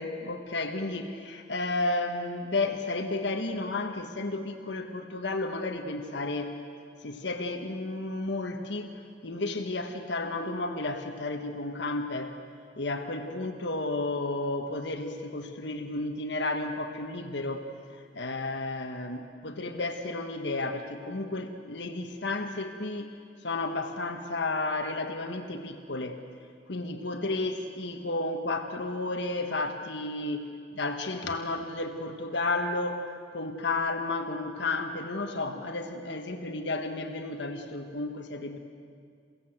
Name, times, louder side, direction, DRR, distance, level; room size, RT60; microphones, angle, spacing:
voice 1, 0.0-6.6 7.0-12.3 12.8-17.7 17.9-23.2 23.4-26.2 26.7-30.4 30.8-38.6, left 2 dB, 65° left, 4 dB, 1.5 m, -32 dB
28.5 x 17.0 x 8.0 m, 2.3 s
head